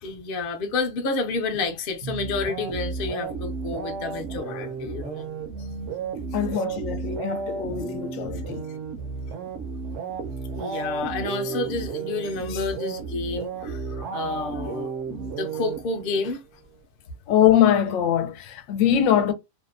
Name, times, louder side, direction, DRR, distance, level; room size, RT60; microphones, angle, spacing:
voice 1, 0.0-5.3 6.5-6.6 10.6-16.4, left 3 dB, 55° left, 0.6 m, -30 dB
sound 1, 2.0-16.3, right 5 dB, 70° right, 0.8 m, -33 dB
voice 2, 6.3-8.6 17.3-19.3, left 10 dB, 75° left, 0.9 m, -22 dB
2.7 x 2.1 x 2.3 m
omnidirectional pair, 1.4 m